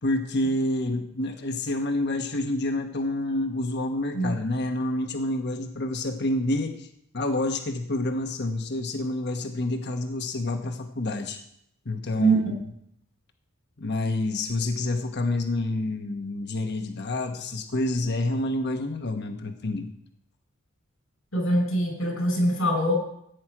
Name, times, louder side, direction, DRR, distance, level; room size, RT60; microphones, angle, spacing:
voice 1, 0.0-6.9 7.1-11.4 11.8-12.6 13.8-19.9, left 2 dB, 55° left, 5 dB, 1.2 m, -28 dB
voice 2, 12.2-12.5 21.3-22.9, right 1 dB, 90° left, 3 dB, 5.0 m, -23 dB
15.5 x 9.2 x 4.9 m, 0.73 s
head